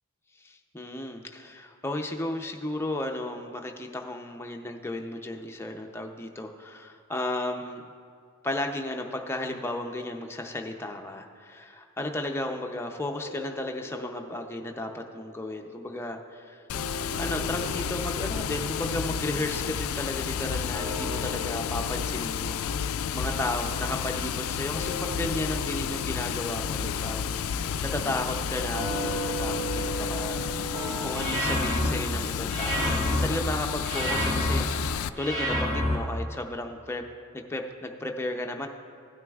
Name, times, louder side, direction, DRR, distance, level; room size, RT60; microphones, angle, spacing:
voice 1, 0.4-7.8 8.4-16.6 17.2-37.1 37.3-38.7, left 1 dB, 10° left, 2 dB, 0.5 m, -34 dB
sound 1, 13.2-16.5 16.7-31.2, equal, 75° right, 1.6 m, -39 dB
Water, 16.7-35.1, left 7 dB, 75° left, 0.3 m, -31 dB
sound 2, 31.1-31.9 32.5-33.3 33.8-34.6 35.2-36.0, equal, 35° right, 1.8 m, -27 dB
16.5 x 9.4 x 2.4 m, 2.4 s
head